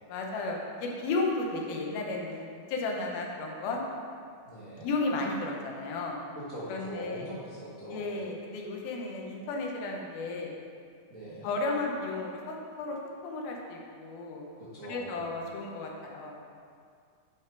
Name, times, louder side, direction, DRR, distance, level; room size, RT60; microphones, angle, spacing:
voice 1, 0.1-3.8 4.8-6.2 6.7-7.3 7.9-10.5 11.4-13.0 13.2-14.4 14.8-16.4, left 3 dB, 85° left, 0 dB, 2.9 m, -33 dB
voice 2, 4.4-4.9 6.3-8.1 11.1-11.5 14.6-15.2, right 1 dB, 40° right, -11 dB, 1.1 m, -41 dB
9.1 x 5.8 x 4.6 m, 2.2 s
omnidirectional pair, 4.1 m